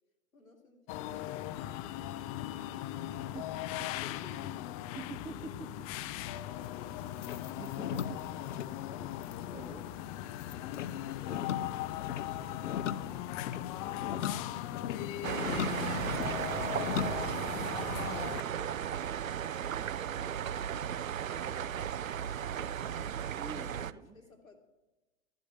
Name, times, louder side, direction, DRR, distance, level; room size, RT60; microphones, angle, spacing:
voice 1, 0.3-3.6 4.0-4.8 16.8-21.5 23.5-24.5, left 3 dB, 80° left, 2 dB, 2.7 m, -59 dB
sound 1, 0.9-18.4, left 13 dB, 30° left, 0.5 m, -39 dB
voice 2, 5.0-5.7 7.6-8.2 9.5-9.8 23.3-24.2, right 4 dB, 10° right, 12 dB, 0.6 m, -45 dB
sound 2, 6.6-17.2, left 9 dB, 65° left, 0.8 m, -40 dB
sound 3, 15.2-23.9, right 9 dB, 80° right, 0.6 m, -35 dB
13.0 x 11.0 x 6.7 m, 1.1 s
figure-of-eight pair, 95°, 40 cm